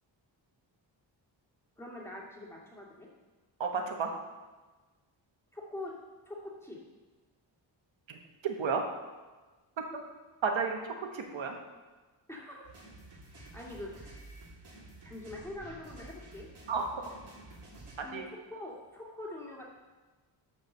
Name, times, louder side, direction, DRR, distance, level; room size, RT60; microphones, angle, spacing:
voice 1, 1.8-3.1 5.5-5.9 6.3-6.8 12.3-12.7 13.3-14.2 15.0-16.5 18.0-19.6, left 1 dB, 5° left, -4 dB, 2.4 m, -44 dB
voice 2, 3.6-4.1 8.1-8.2 8.4-8.8 10.4-11.6 16.7-16.8 18.0-18.3, right 5 dB, 80° right, 3 dB, 1.4 m, -32 dB
sound 1, 12.6-18.0, right 2 dB, 60° right, 3.0 m, -51 dB
12.0 x 4.8 x 6.7 m, 1.3 s
wide cardioid pair, 125°, 45 cm